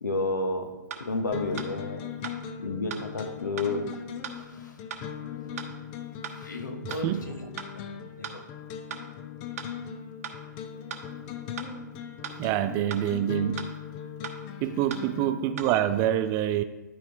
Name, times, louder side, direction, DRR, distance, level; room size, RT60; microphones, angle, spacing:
voice 1, 0.0-0.7 1.0-2.0 2.6-3.8 4.6-4.7 6.4-7.9 8.2-8.4, left 2 dB, 75° left, 5 dB, 1.2 m, -31 dB
sound 1, 0.9-1.0 1.6-1.7 2.2-2.4 2.9-3.0 3.6-3.7 4.2-4.4 4.9-5.0 5.6-5.7 6.2-6.4 6.9-7.0 7.6-7.7 8.2-8.4 8.9-9.0 9.6-9.7 10.2-10.4 10.9-11.0 11.6-11.7 12.2-12.4 12.9-13.0 13.6-13.7 14.2-14.4 14.9-15.0 15.6-15.7, right 8 dB, 50° right, 1.0 m, -37 dB
sound 2, 1.3-16.1, left 8 dB, 35° left, 0.6 m, -40 dB
voice 2, 6.8-7.3 12.4-13.6 14.6-16.6, right 11 dB, 25° right, 12 dB, 0.4 m, -26 dB
11.5 x 4.6 x 3.6 m, 1.1 s
figure-of-eight pair, 120°, 10 cm